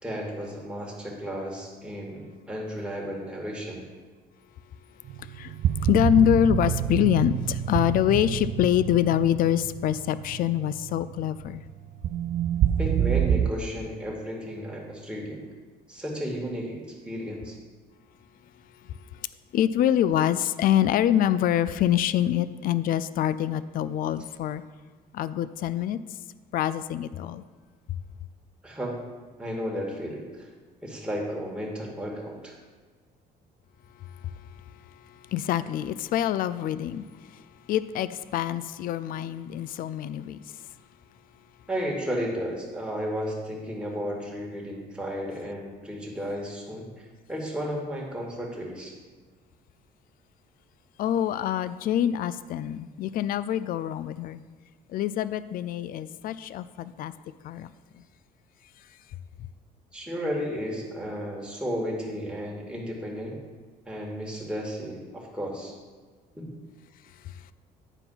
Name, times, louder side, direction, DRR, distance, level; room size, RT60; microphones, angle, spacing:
voice 1, 0.0-3.8 12.8-15.4 15.9-16.8 17.0-17.6 28.6-29.1 29.4-30.5 30.8-32.5 41.7-48.9 59.9-63.4 63.9-65.8 66.3-66.5, equal, 5° right, -2 dB, 2.1 m, -33 dB
sound 1, 5.1-13.5, right 10 dB, 50° right, 0.4 m, -28 dB
voice 2, 5.2-5.5 5.8-11.6 19.5-24.6 25.1-26.0 26.5-27.4 35.3-37.0 37.7-40.4 51.0-54.4 54.9-57.1 57.4-57.7, left 11 dB, 60° left, 15 dB, 0.4 m, -25 dB
9.8 x 4.6 x 5.7 m, 1.4 s
cardioid pair, 110°, 17 cm